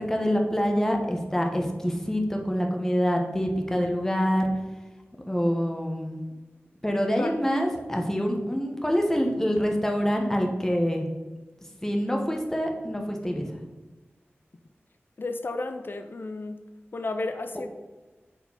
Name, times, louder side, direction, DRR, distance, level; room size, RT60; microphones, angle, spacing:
voice 1, 0.0-4.5 5.3-6.2 6.8-11.1 11.8-13.6, equal, 10° left, 2 dB, 0.9 m, -26 dB
voice 2, 15.2-16.6 16.9-17.7, left 2 dB, 50° left, 8 dB, 0.4 m, -32 dB
4.7 x 4.4 x 5.2 m, 1.2 s
wide cardioid pair, 80°, 5 cm